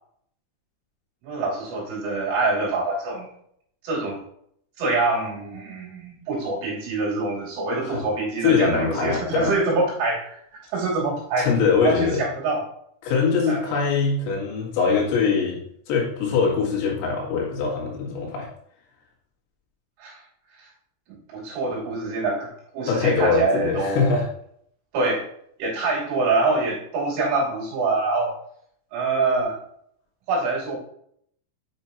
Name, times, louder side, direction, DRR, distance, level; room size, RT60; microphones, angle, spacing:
voice 1, 1.2-3.3 3.8-4.2 4.8-11.5 11.8-12.6 13.5-13.7 20.0-20.2 20.6-20.7 21.3-24.1 24.9-25.2 25.6-28.3 28.9-29.6 30.3-30.8, right 3 dB, 70° right, -5 dB, 5.1 m, -25 dB
voice 2, 8.4-9.5 11.4-12.2 13.0-15.6 15.9-18.5 22.9-24.3, left 5 dB, 85° left, -3 dB, 4.5 m, -22 dB
9.5 x 5.8 x 2.7 m, 0.68 s
omnidirectional pair, 5.8 m